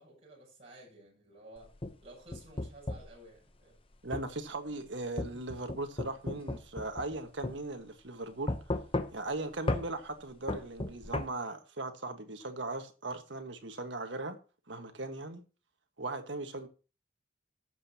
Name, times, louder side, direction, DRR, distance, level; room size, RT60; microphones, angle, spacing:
voice 1, 0.0-1.7 2.0-3.8, right 1 dB, 35° right, 7.4 m, -53 dB
sound 1, 1.6-3.1 4.1-4.3 5.2-7.2 7.4-7.6 8.5-9.3 9.7-9.9 10.5-11.3, left 2 dB, 30° left, 0.8 m, -34 dB
voice 2, 4.0-8.6 9.1-14.4 14.7-15.4 16.0-16.7, right 2 dB, 85° right, 1.6 m, -38 dB
19.0 x 7.7 x 2.9 m
head